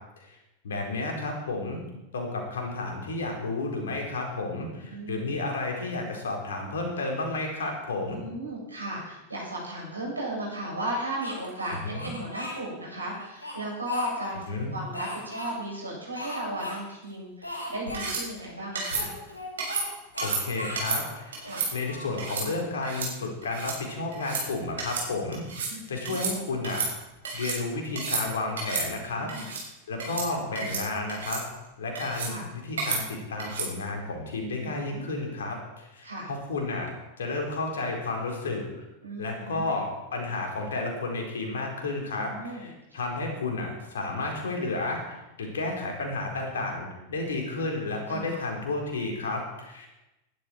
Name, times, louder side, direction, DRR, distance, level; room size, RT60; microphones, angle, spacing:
voice 1, 0.6-1.8 2.1-8.2 11.7-12.1 14.5-14.7 20.2-21.4 21.7-26.9 27.3-29.3 29.9-31.4 31.8-36.9 37.2-38.6 39.2-42.3 42.6-49.9, left 3 dB, 65° left, 1 dB, 4.5 m, -32 dB
voice 2, 4.9-5.4 8.1-19.1 21.4-21.7 24.2-24.3 25.7-26.2 29.0-29.5 32.2-32.5 34.6-35.1 36.0-36.3 39.0-39.7 42.1-42.7 48.1-48.4, right 1 dB, 80° right, -4 dB, 7.7 m, -36 dB
Speech, 11.2-12.6 13.2-14.5 14.9-15.5 16.1-16.8 17.0-17.1 17.4-18.2 18.9-19.9 20.1-20.8 21.3-22.7, left 1 dB, 85° left, 6.2 m, -38 dB
sound 1, 17.9-18.2 18.8-19.0 19.6-19.9 20.2-20.4 20.8-21.0 21.3-21.7 22.2-22.5 22.8-23.1 23.4-23.8 24.1-24.4 24.8-25.1 25.3-25.7 26.1-26.3 26.6-27.6 27.9-28.2 28.6-28.9 29.3-29.6 30.0-30.3 30.6-30.8 31.1-31.4 32.0-32.3 32.8-33.0 33.4-33.7, right 4 dB, 65° right, 6.3 m, -31 dB
20.0 x 12.0 x 4.7 m, 0.97 s
figure-of-eight pair, 90°, 0 cm